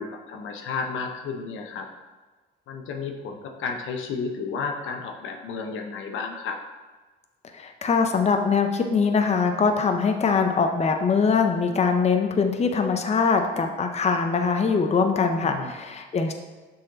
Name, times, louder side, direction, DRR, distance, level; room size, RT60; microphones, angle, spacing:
voice 1, 0.0-1.9 2.7-6.6 15.4-15.7, left 5 dB, 80° left, 3 dB, 0.7 m, -32 dB
voice 2, 7.5-16.3, left 5 dB, 35° left, 5 dB, 0.6 m, -22 dB
6.4 x 4.2 x 3.8 m, 1.3 s
cardioid pair, 90°, 20 cm